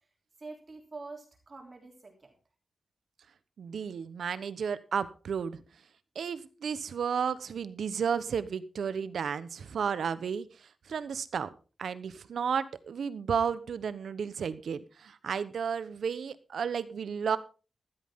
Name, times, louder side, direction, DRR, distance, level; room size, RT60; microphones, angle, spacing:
voice 1, 0.4-2.3 3.8-3.9, right 3 dB, 35° right, 2 dB, 3.4 m, -46 dB
voice 2, 3.6-5.6 6.1-10.5 10.9-11.5 11.8-17.4, right 7 dB, 85° right, 15 dB, 1.0 m, -32 dB
15.0 x 12.5 x 3.7 m, 0.34 s
wide cardioid pair, 180°, 0 cm